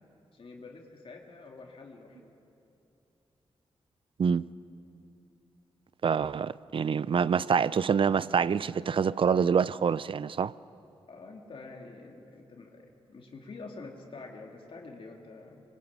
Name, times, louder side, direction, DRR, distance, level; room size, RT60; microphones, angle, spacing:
voice 1, 0.3-2.3 11.1-15.6, left 3 dB, 60° left, 2.6 m, -47 dB
voice 2, 6.0-10.5, right 6 dB, 60° right, 0.5 m, -26 dB
26.0 x 23.5 x 8.8 m
wide cardioid pair, 95°, 10 cm